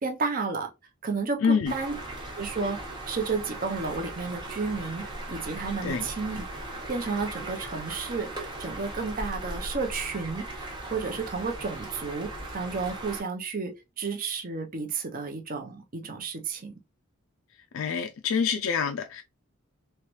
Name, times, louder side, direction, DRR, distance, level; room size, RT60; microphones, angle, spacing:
voice 1, 0.0-0.7 1.0-2.0 2.4-2.8 3.1-5.0 5.3-6.5 6.9-16.7, right 4 dB, 40° right, 0.7 m, -32 dB
voice 2, 1.4-1.7 5.8-6.1 17.7-19.2, left 6 dB, 70° left, 0.4 m, -26 dB
sound 1, 1.7-13.2, right 2 dB, 20° right, 1.0 m, -38 dB
3.2 x 3.0 x 3.0 m
head